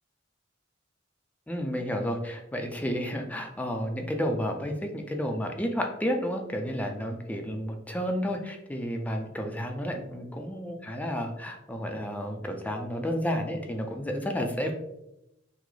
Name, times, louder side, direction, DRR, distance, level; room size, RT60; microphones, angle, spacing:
voice 1, 1.5-14.7, equal, 10° left, 3 dB, 0.4 m, -31 dB
5.8 x 2.0 x 3.1 m, 0.87 s
head